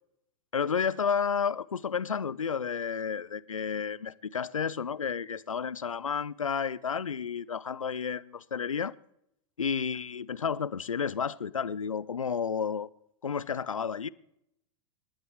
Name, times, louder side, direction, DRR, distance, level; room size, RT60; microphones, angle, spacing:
voice 1, 0.5-8.9 9.6-12.9 13.2-14.1, left 6 dB, 90° left, 0.6 m, -31 dB
28.5 x 12.0 x 3.3 m
hypercardioid pair, 95°, 17 cm